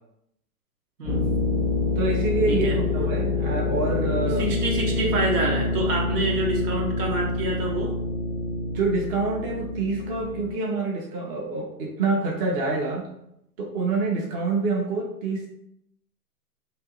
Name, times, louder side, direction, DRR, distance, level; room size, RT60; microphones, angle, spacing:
sound 1, 1.0-10.5, left 3 dB, 10° left, 0.5 m, -26 dB
voice 1, 2.0-4.5 8.7-13.1 13.6-15.5, right 3 dB, 35° right, -1 dB, 0.7 m, -26 dB
voice 2, 4.4-7.9, right 2 dB, 80° right, -1 dB, 1.3 m, -27 dB
2.9 x 2.6 x 3.7 m, 0.78 s
hypercardioid pair, 135°, 46 cm